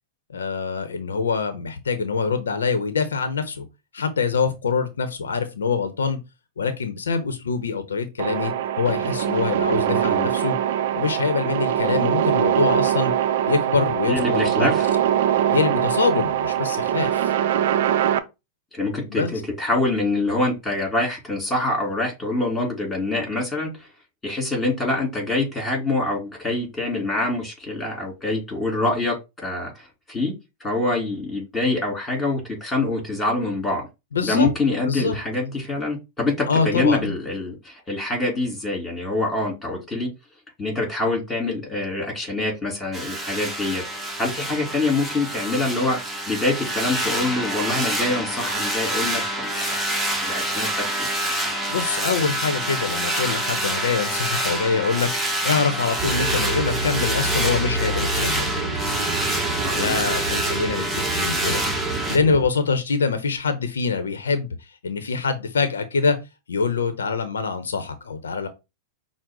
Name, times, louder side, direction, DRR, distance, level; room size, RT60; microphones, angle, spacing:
voice 1, 0.3-3.7 3.9-6.2 6.6-10.5 10.9-13.1 13.5-14.7 15.5-17.3 19.1-19.3 34.1-34.5 34.9-35.1 36.5-37.1 51.7-55.1 55.4-58.6 59.7-61.6 62.1-64.5 64.8-66.2 66.5-68.5, left 5 dB, 90° left, 0.7 m, -24 dB
sound 1, 8.2-18.2, right 10 dB, 65° right, 0.5 m, -22 dB
voice 2, 9.8-10.3 14.1-14.9 18.7-23.9 24.2-29.1 29.4-30.3 30.6-33.9 34.2-40.1 40.6-43.8 44.2-49.8 50.2-50.7 51.0-51.1 59.6-60.0, left 2 dB, 15° left, 3.0 m, -25 dB
sound 2, 42.9-62.2, right 1 dB, 5° right, 1.2 m, -27 dB
sound 3, 56.0-62.5, right 2 dB, 25° right, 0.9 m, -28 dB
6.0 x 2.0 x 3.7 m
hypercardioid pair, 110°, 0 cm